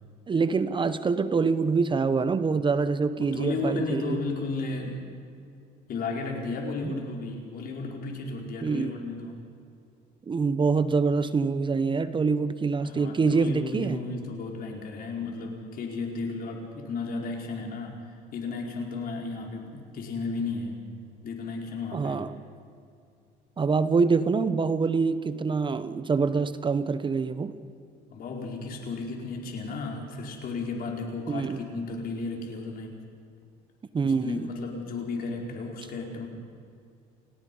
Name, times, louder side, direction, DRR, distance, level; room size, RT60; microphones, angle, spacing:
voice 1, 0.3-4.2 6.8-7.0 8.6-8.9 10.3-14.0 21.9-22.4 23.6-27.5 31.3-31.6 33.9-34.5, right 4 dB, 30° right, 13 dB, 0.9 m, -25 dB
voice 2, 3.2-5.0 5.9-9.4 12.8-20.8 21.2-22.2 28.1-33.0 34.0-36.3, left 3 dB, 60° left, 1 dB, 4.7 m, -34 dB
28.5 x 18.5 x 5.5 m, 2.4 s
cardioid pair, 110°, 17 cm